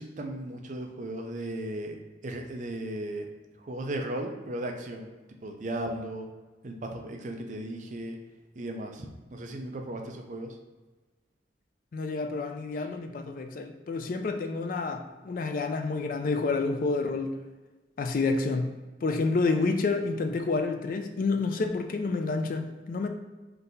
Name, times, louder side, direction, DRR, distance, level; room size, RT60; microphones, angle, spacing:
voice 1, 0.0-2.0 2.2-3.3 3.6-5.1 5.4-6.3 6.6-8.2 8.6-10.6 19.5-19.6, right 1 dB, 40° right, 3 dB, 0.5 m, -36 dB
voice 2, 11.9-17.3 18.0-18.8 19.0-23.1, left 3 dB, 45° left, 6 dB, 0.3 m, -29 dB
3.8 x 2.7 x 3.9 m, 1.2 s
head